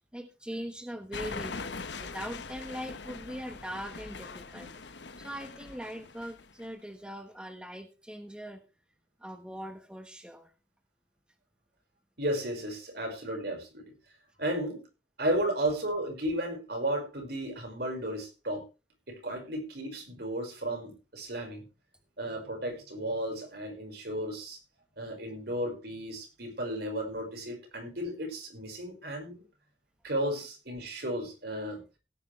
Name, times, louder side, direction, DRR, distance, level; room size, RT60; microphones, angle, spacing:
voice 1, 0.1-8.6 9.2-10.5, equal, 5° right, 5 dB, 1.3 m, -41 dB
sound 1, 1.1-6.7, left 4 dB, 70° left, 1.1 m, -42 dB
voice 2, 12.2-13.8 14.4-14.8 15.2-18.6 19.2-21.6 22.2-24.6 25.0-29.4 30.0-31.8, right 1 dB, 60° right, 3 dB, 5.4 m, -34 dB
17.5 x 10.0 x 3.3 m, 0.30 s
head